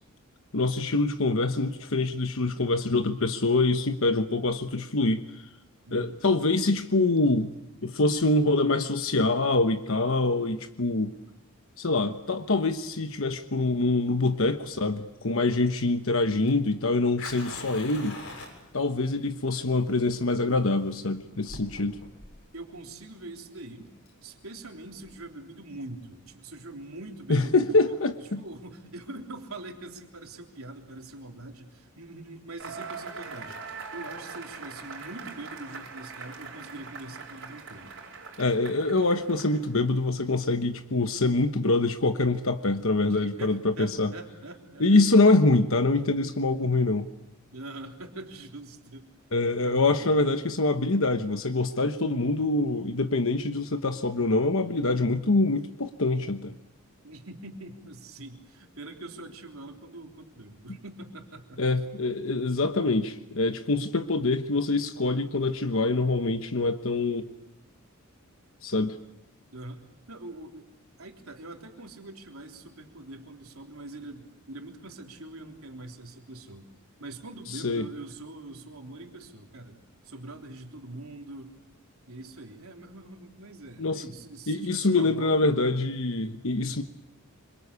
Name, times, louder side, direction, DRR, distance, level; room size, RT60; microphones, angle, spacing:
voice 1, 0.5-5.2 5.9-7.5 7.8-11.1 11.8-18.2 18.7-22.0 27.3-28.4 38.4-44.1 44.8-47.1 49.3-56.5 61.6-67.3 68.6-68.9 77.5-77.9 83.8-84.0 84.5-86.8, left 2 dB, 70° left, 7 dB, 1.2 m, -25 dB
voice 2, 5.9-6.2 22.5-23.9 24.2-28.0 28.4-33.6 33.9-37.9 43.0-45.0 47.5-49.1 49.6-50.1 57.0-61.6 69.5-70.7 71.0-76.7 77.0-81.5 82.1-85.5 86.5-86.8, right 2 dB, 75° right, 2 dB, 3.5 m, -43 dB
Fire, 14.2-25.1, left 2 dB, 90° left, 7.5 m, -46 dB
Cheering / Applause / Crowd, 32.6-39.8, right 5 dB, 55° right, 5.3 m, -42 dB
27.0 x 25.0 x 8.4 m, 0.87 s
head